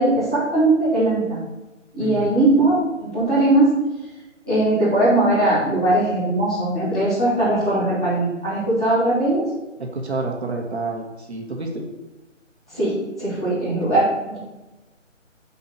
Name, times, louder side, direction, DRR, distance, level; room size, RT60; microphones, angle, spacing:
voice 1, 0.0-1.4 1.9-3.7 4.4-9.4 12.7-14.4, right 2 dB, 5° right, -16 dB, 0.8 m, -20 dB
voice 2, 2.0-2.3 9.8-11.9, right 3 dB, 55° right, 2 dB, 1.9 m, -29 dB
5.9 x 5.4 x 6.7 m, 1.1 s
figure-of-eight pair, 170°, 38 cm